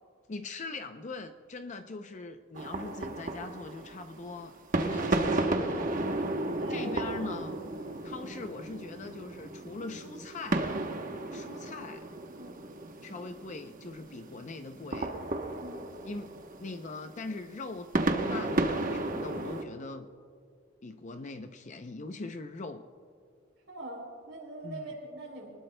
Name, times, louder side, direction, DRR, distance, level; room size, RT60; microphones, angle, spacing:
voice 1, 0.3-5.9 6.7-7.6 8.0-10.7 11.3-12.1 13.0-15.1 16.0-16.3 16.6-17.9 18.3-20.1 20.8-22.9 24.6-24.9, left 3 dB, 40° left, 7 dB, 0.5 m, -41 dB
sound 1, 2.5-19.6, right 2 dB, 45° right, 1.0 m, -33 dB
voice 2, 6.5-7.4 12.4-12.6 15.6-15.9 23.7-25.6, right 1 dB, 80° right, -1 dB, 3.4 m, -43 dB
25.0 x 19.5 x 2.2 m, 2.2 s
head